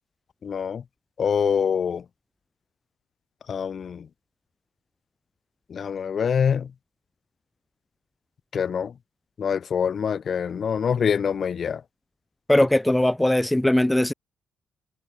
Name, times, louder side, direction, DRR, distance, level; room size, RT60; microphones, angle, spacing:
voice 1, 0.4-0.8 1.2-2.0 3.5-4.1 5.7-6.7 8.5-8.9 9.4-11.8, left 7 dB, 50° left, 2.1 m, -25 dB
voice 2, 12.5-14.1, left 1 dB, 5° left, 0.9 m, -20 dB
cardioid pair, 90°, 0 cm